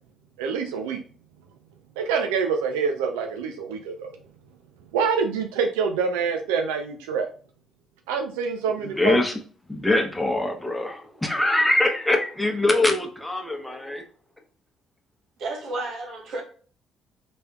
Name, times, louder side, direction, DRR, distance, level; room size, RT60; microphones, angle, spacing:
voice 1, 0.4-1.0 2.0-4.1 4.9-7.3 8.1-9.2, right 5 dB, 85° right, 0.4 m, -26 dB
voice 2, 8.8-9.3 9.7-14.0, left 2 dB, 10° left, 1.0 m, -23 dB
voice 3, 15.4-16.4, right 2 dB, 65° right, 1.2 m, -31 dB
4.1 x 3.4 x 2.3 m
hypercardioid pair, 55°, 0 cm